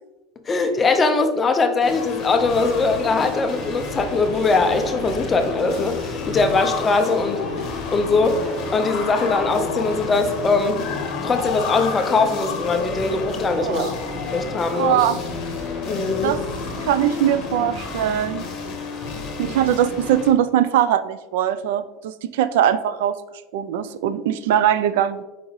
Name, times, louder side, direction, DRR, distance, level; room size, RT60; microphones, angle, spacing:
voice 1, 0.5-10.9 11.2-13.9 14.2-15.0 15.9-16.4, left 3 dB, 15° left, 7 dB, 0.4 m, -21 dB
sound 1, 1.8-20.3, left 3 dB, 35° left, 1.2 m, -31 dB
sound 2, 2.4-9.6, left 1 dB, 15° right, 1.4 m, -42 dB
sound 3, 3.7-18.6, left 6 dB, 60° left, 0.6 m, -34 dB
voice 2, 13.6-13.9 14.7-15.2 16.2-16.4 16.8-18.4 19.4-23.2 23.5-25.2, right 10 dB, 80° right, 13 dB, 0.3 m, -21 dB
6.4 x 4.9 x 3.1 m, 1.1 s
cardioid pair, 170°, 0 cm